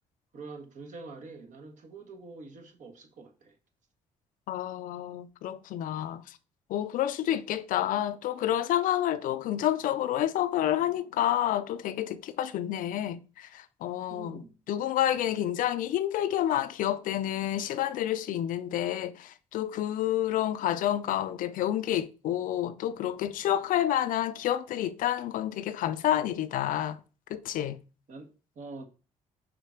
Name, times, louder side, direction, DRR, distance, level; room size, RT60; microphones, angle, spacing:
voice 1, 0.3-3.6 14.1-14.6 28.1-28.8, right 3 dB, 60° right, 1.4 m, -45 dB
voice 2, 4.5-6.2 6.7-14.4 14.7-27.0 27.3-27.8, left 12 dB, 75° left, 0.5 m, -29 dB
5.0 x 4.7 x 4.4 m
supercardioid pair, 55°, 14 cm